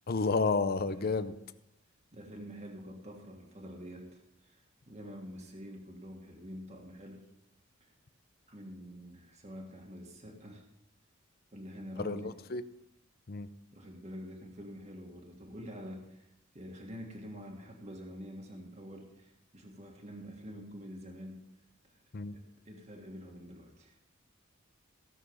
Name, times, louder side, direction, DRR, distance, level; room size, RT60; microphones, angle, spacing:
voice 1, 0.1-1.3 12.0-12.6 13.3-13.5 22.1-22.3, left 4 dB, 50° left, 12 dB, 0.6 m, -31 dB
voice 2, 2.1-7.3 8.5-10.6 11.5-12.3 13.7-16.3 16.5-21.5 21.9-22.0 22.3-24.0, equal, 35° right, 1 dB, 1.7 m, -47 dB
16.5 x 6.2 x 5.4 m, 0.82 s
head